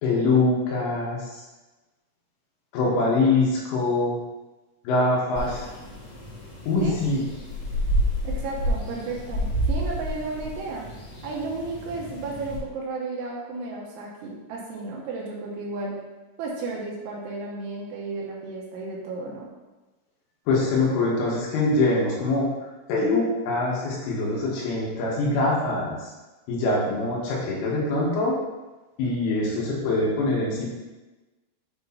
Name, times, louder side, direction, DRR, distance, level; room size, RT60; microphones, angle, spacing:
voice 1, 0.0-1.4 2.7-4.2 4.9-5.7 6.7-7.2 20.5-22.5 22.9-26.1 26.5-28.4 29.0-30.7, left 2 dB, 80° left, -4 dB, 3.8 m, -23 dB
sound 1, 5.4-12.6, equal, 50° left, 2.1 m, -30 dB
voice 2, 8.2-10.9 11.2-16.0 16.4-19.5, right 3 dB, 75° right, -2 dB, 3.2 m, -33 dB
8.9 x 4.5 x 2.7 m, 1.1 s
omnidirectional pair, 5.8 m